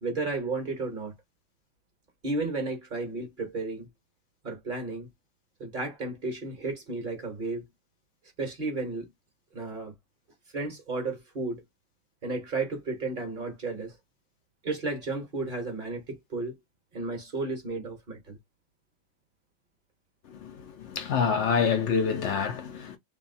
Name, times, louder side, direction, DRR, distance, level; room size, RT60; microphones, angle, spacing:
voice 1, 0.0-1.1 2.2-3.9 4.4-5.1 5.6-7.6 8.4-9.1 9.5-9.9 10.5-11.6 12.2-14.0 14.6-16.5 16.9-18.4, right 3 dB, 45° right, 1.1 m, -33 dB
voice 2, 20.3-23.0, left 6 dB, 70° left, 0.9 m, -27 dB
2.9 x 2.6 x 2.6 m
omnidirectional pair, 1.3 m